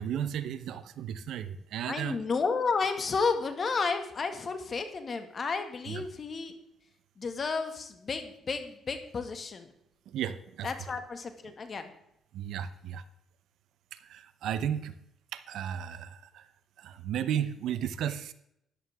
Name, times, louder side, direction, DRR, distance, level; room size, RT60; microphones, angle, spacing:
voice 1, 0.0-2.2 5.9-6.0 10.1-10.7 12.3-13.0 13.9-14.9 15.3-16.5 16.8-18.3, right 9 dB, 80° right, 13 dB, 0.8 m, -34 dB
voice 2, 1.9-6.5 7.2-9.7 10.6-11.9, left 4 dB, 45° left, 7 dB, 1.9 m, -32 dB
13.5 x 11.0 x 3.6 m, 0.76 s
cardioid pair, 90°, 0 cm